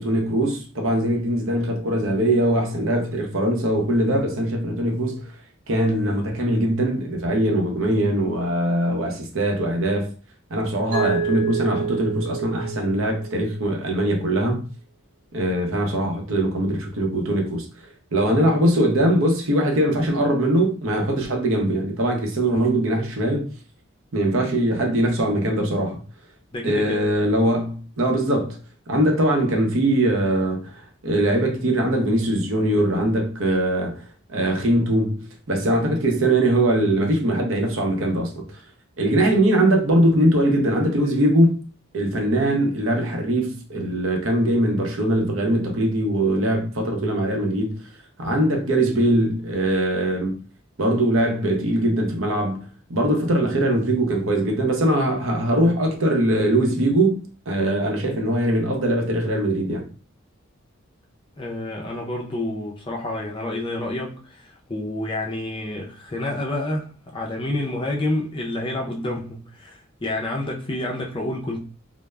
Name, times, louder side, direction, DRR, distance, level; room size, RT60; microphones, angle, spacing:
voice 1, 0.0-5.3 5.7-10.1 10.5-14.7 15.3-17.7 18.1-23.5 24.1-26.0 26.6-28.6 28.9-34.0 34.3-38.4 39.0-41.6 41.9-47.8 48.2-50.4 50.8-59.9, right 1 dB, 70° right, 0.7 m, -21 dB
Mallet percussion, 10.9-13.8, right 6 dB, 35° right, 1.2 m, -28 dB
voice 2, 26.5-27.0 61.4-71.6, left 1 dB, 25° left, 0.5 m, -29 dB
2.3 x 2.0 x 3.1 m
head